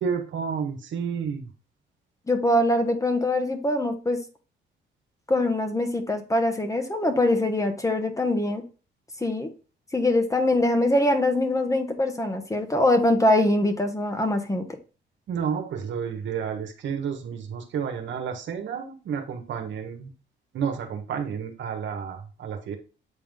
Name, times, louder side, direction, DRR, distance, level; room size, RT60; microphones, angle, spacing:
voice 1, 0.0-1.5 15.3-20.1 20.5-22.8, right 7 dB, 70° right, 5 dB, 1.4 m, -31 dB
voice 2, 2.3-4.2 5.3-8.6 9.2-9.5 9.9-14.7, left 1 dB, 15° left, 6 dB, 1.3 m, -23 dB
8.5 x 3.7 x 3.6 m, 0.35 s
cardioid pair, 90°, 20 cm